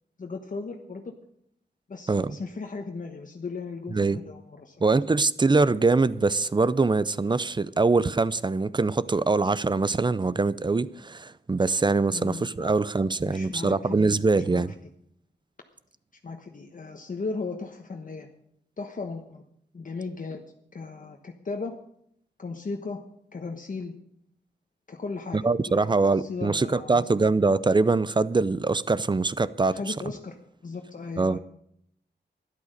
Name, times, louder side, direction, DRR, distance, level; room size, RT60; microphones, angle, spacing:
voice 1, 0.2-1.1 1.9-4.8 12.1-12.7 13.2-14.6 16.2-18.3 18.8-19.4 19.7-20.4 20.7-21.7 22.4-23.0 23.3-23.9 24.9-27.2 29.7-30.4 30.6-31.4, left 4 dB, 45° left, 1.2 m, -36 dB
voice 2, 4.8-14.7 25.3-29.9 31.2-31.4, right 3 dB, 25° right, 0.5 m, -23 dB
12.5 x 11.5 x 6.6 m
wide cardioid pair, 125°, 18 cm